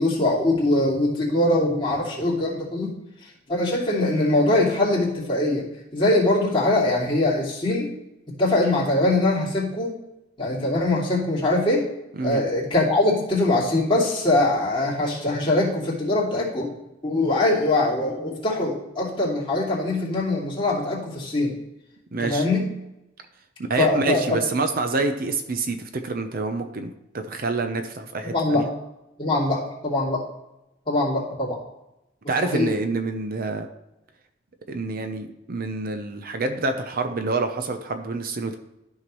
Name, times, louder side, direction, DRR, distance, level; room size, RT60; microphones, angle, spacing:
voice 1, 0.0-2.9 3.2-5.7 5.9-7.9 8.4-10.0 10.4-11.9 12.2-16.7 17.0-21.5 22.2-22.7 23.8-24.2 28.2-28.7 29.2-30.2 30.9-31.6 32.4-32.7, left 2 dB, 25° left, -5 dB, 2.6 m, -22 dB
voice 2, 22.1-22.4 23.6-28.7 32.3-33.7 34.7-38.6, right 3 dB, 50° right, 7 dB, 0.7 m, -27 dB
13.0 x 5.8 x 3.1 m, 0.91 s
head